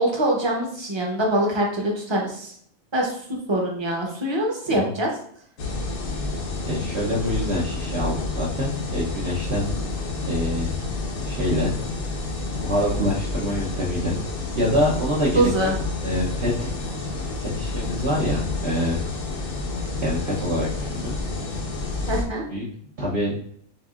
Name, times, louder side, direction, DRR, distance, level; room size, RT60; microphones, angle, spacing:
voice 1, 0.0-2.5 2.9-3.2 3.5-5.1 15.3-15.7 22.1-22.4, right 1 dB, 25° right, -1 dB, 0.8 m, -23 dB
sound 1, 5.6-22.2, left 3 dB, 70° left, 1.2 m, -29 dB
voice 2, 6.7-9.7 10.2-10.8 11.2-11.7 12.6-14.2 14.5-15.7 16.0-16.7 17.4-19.0 20.0-21.1 22.5-22.6 23.0-23.4, left 1 dB, 55° right, -6 dB, 1.0 m, -25 dB
7.0 x 2.6 x 2.4 m, 0.65 s
omnidirectional pair, 1.4 m